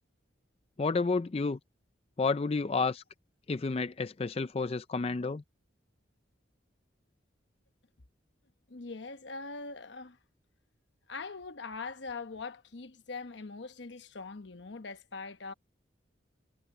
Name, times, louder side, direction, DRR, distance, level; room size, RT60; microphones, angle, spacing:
voice 1, 0.8-1.6 2.2-3.0 3.5-5.4, left 4 dB, 30° left, 0.4 m, -30 dB
voice 2, 8.7-10.2 11.1-15.5, left 4 dB, 75° left, 1.0 m, -42 dB
head